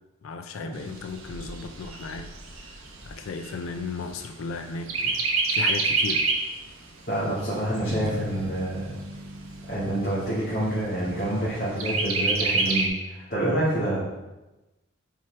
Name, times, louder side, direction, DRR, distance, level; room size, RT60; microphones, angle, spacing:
voice 1, 0.2-2.3 2.6-6.3 8.0-8.2, left 4 dB, 80° left, 7 dB, 0.4 m, -36 dB
Chirp tweet, 0.7-4.5 4.9-6.5 7.0-7.1 7.4-8.4 9.0-9.1 9.5-9.6 10.0-10.5 11.8-12.9, right 3 dB, 85° right, 1.0 m, -27 dB
voice 2, 7.1-9.0 9.7-14.0, right 1 dB, 45° left, -12 dB, 2.4 m, -27 dB
sound 1, 7.9-11.6, left 1 dB, 10° right, 1.6 m, -39 dB
5.7 x 4.7 x 4.6 m, 1.1 s
head